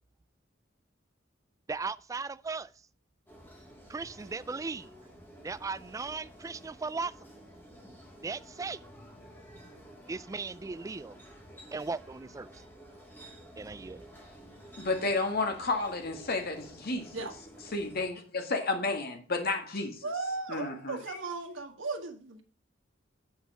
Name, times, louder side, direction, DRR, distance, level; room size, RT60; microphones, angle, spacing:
voice 1, 1.7-2.7 3.9-4.9 5.4-7.1 8.2-8.8 10.1-11.2 11.7-12.5 13.6-14.1, right 4 dB, 15° right, 0.3 m, -37 dB
sound 1, 3.3-18.1, right 1 dB, 10° left, 3.0 m, -52 dB
voice 2, 14.8-17.3 17.7-20.1 20.5-21.2, left 3 dB, 55° left, 1.8 m, -32 dB
voice 3, 20.0-22.4, right 3 dB, 85° right, 1.6 m, -36 dB
8.4 x 5.5 x 6.0 m
head